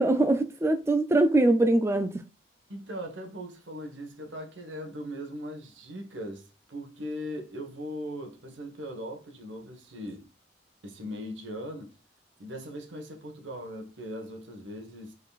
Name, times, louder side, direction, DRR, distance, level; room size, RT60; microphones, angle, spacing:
voice 1, 0.0-2.2, right 2 dB, 15° right, 0.3 m, -23 dB
voice 2, 2.7-10.3 10.8-12.0 12.4-15.1, equal, 85° right, 1.2 m, -39 dB
5.6 x 3.8 x 2.3 m
head